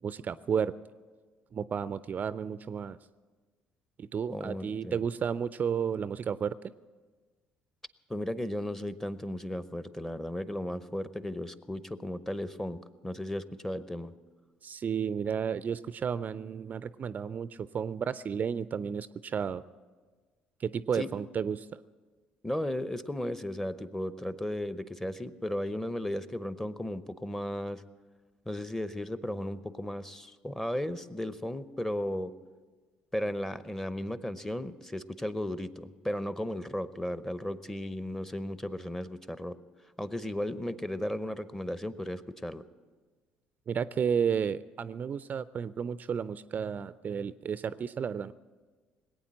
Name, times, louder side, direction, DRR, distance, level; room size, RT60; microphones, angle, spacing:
voice 1, 0.0-0.7 1.5-3.0 4.0-6.6 14.6-19.6 20.6-21.7 43.7-48.3, right 7 dB, 40° right, 16 dB, 0.4 m, -32 dB
voice 2, 4.3-5.0 8.1-14.1 20.9-21.1 22.4-27.8 28.5-32.3 33.1-39.5 40.0-42.6, left 1 dB, 10° left, 14 dB, 0.8 m, -35 dB
19.5 x 8.8 x 7.5 m, 1.4 s
hypercardioid pair, 60°, 4 cm